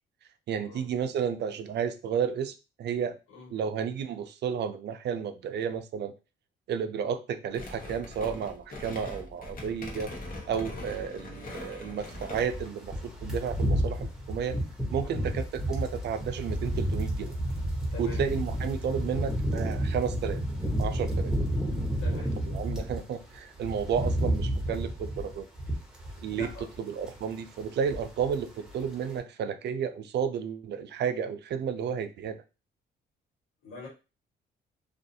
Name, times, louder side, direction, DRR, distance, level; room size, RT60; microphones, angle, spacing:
voice 1, 0.5-3.2 3.5-6.1 6.7-10.1 10.5-14.6 14.9-17.3 18.0-20.4 20.8-21.3 22.1-25.5 26.2-26.5 26.9-32.4, right 7 dB, 60° right, 0.4 m, -32 dB
voice 2, 3.3-3.6 10.7-11.0 15.0-15.3 17.9-18.2 22.0-22.4 26.3-26.7 33.6-33.9, left 3 dB, 85° left, 1.5 m, -44 dB
sound 1, 7.5-12.7, left 1 dB, 45° left, 0.9 m, -41 dB
sound 2, 12.1-23.0 23.3-26.8 27.0-27.3 27.6-28.4 28.7-28.9, equal, 5° right, 0.9 m, -31 dB
2.5 x 2.3 x 2.7 m
cardioid pair, 90°, 20 cm